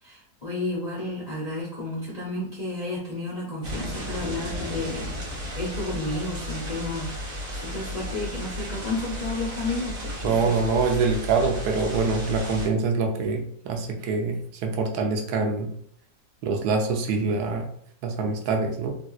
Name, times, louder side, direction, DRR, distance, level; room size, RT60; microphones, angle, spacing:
voice 1, 0.0-7.1 7.5-10.5, left 2 dB, 45° left, -6 dB, 0.5 m, -32 dB
sound 1, 3.6-12.7, equal, 40° right, 1.1 m, -34 dB
voice 2, 10.2-15.7 16.4-17.7 18.0-18.9, right 4 dB, 80° right, 3 dB, 1.1 m, -25 dB
3.4 x 2.6 x 2.3 m, 0.63 s
omnidirectional pair, 1.7 m